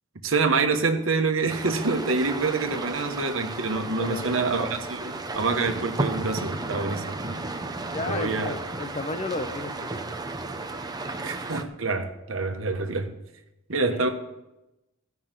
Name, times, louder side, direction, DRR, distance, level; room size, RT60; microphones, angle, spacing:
voice 1, 0.2-7.3 8.0-8.6 11.2-13.1 13.7-14.1, right 3 dB, 70° right, 1.3 m, -26 dB
sound 1, 1.5-11.6, right 2 dB, 20° right, 0.8 m, -34 dB
voice 2, 4.0-4.3 7.8-10.4 13.9-14.1, left 3 dB, 30° left, 0.9 m, -34 dB
15.5 x 6.0 x 7.6 m
head